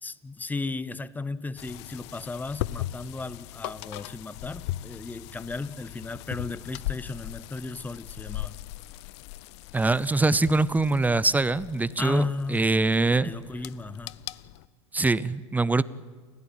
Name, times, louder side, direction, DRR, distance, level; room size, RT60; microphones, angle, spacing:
voice 1, 0.0-8.6 12.0-12.7 13.2-14.2, left 3 dB, 10° left, 0.9 m, -35 dB
sound 1, 1.6-14.7, left 16 dB, 60° left, 0.7 m, -39 dB
voice 2, 9.7-13.3 14.9-15.8, right 3 dB, 10° right, 0.6 m, -23 dB
29.0 x 16.0 x 9.0 m
hypercardioid pair, 90°, 16 cm